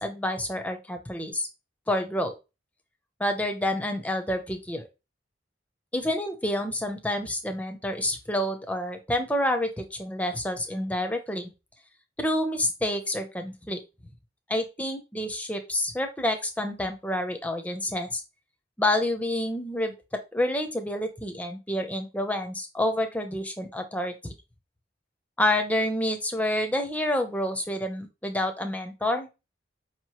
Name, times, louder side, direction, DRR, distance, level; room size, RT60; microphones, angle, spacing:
voice 1, 0.0-1.5 1.9-2.3 3.2-4.8 5.9-11.5 12.2-13.8 14.5-18.2 18.8-24.3 25.4-29.3, left 1 dB, 10° left, 5 dB, 0.6 m, -28 dB
5.2 x 3.0 x 2.9 m, 0.26 s
head